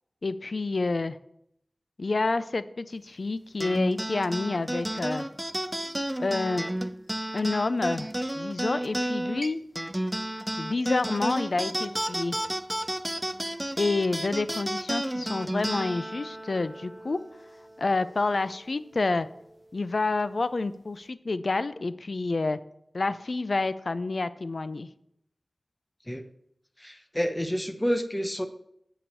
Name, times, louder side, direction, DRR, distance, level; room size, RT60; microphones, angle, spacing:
voice 1, 0.2-1.2 2.0-5.3 6.2-6.6 7.3-9.6 10.6-12.4 13.8-17.2 17.8-19.3 19.7-22.6 22.9-24.9, left 3 dB, 60° left, 14 dB, 0.5 m, -28 dB
sound 1, 3.6-18.3, right 1 dB, 10° right, 0.4 m, -32 dB
voice 2, 26.8-28.5, equal, 10° left, 7 dB, 0.9 m, -29 dB
8.7 x 5.0 x 6.9 m, 0.75 s
wide cardioid pair, 70°, 0 cm